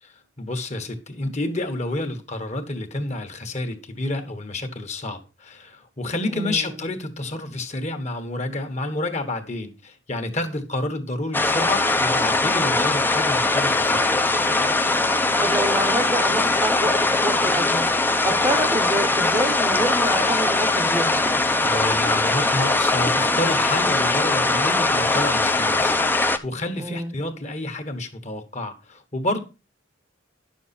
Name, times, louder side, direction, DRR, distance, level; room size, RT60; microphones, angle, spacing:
voice 1, 0.0-14.1 21.6-29.4, left 2 dB, 35° left, 1.3 m, -29 dB
voice 2, 6.3-6.7 15.4-17.9 18.3-21.2 26.8-27.2, right 1 dB, 20° right, 0.8 m, -27 dB
sound 1, 11.3-26.4, left 2 dB, 10° left, 0.6 m, -21 dB
10.5 x 6.5 x 4.2 m
head